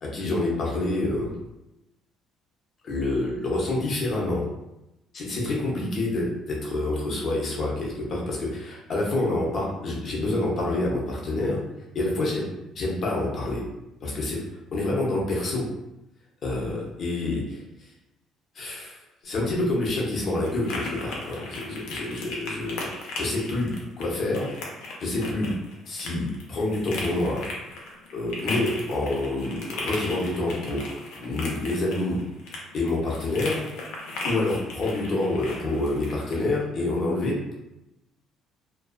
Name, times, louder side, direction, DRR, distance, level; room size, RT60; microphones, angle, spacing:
voice 1, 0.0-1.3 2.8-4.4 5.1-11.6 11.9-12.5 12.7-13.6 14.0-14.4 14.7-15.7 16.4-17.6 18.5-24.5 25.0-25.5 25.9-27.5 28.1-32.2 32.7-33.6 34.2-37.5, left 2 dB, 40° left, -3 dB, 0.7 m, -27 dB
sound 1, 19.2-36.4, left 2 dB, 85° left, 0.5 m, -37 dB
2.4 x 2.3 x 2.3 m, 0.92 s
cardioid pair, 150°, 0 cm